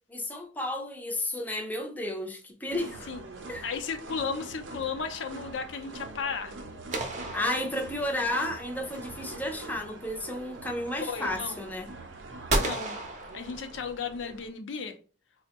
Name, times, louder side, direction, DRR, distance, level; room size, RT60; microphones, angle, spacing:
voice 1, 0.1-3.1 3.5-3.6 7.3-11.9, left 1 dB, 10° left, 0.5 m, -32 dB
sound 1, 2.7-14.5, right 3 dB, 85° right, 0.5 m, -44 dB
voice 2, 3.6-6.5 11.1-11.6 12.6-13.0 13.3-14.9, left 5 dB, 80° left, 0.5 m, -34 dB
sound 2, 6.9-8.4 12.5-14.1, right 2 dB, 40° right, 0.6 m, -32 dB
4.2 x 2.1 x 2.8 m
head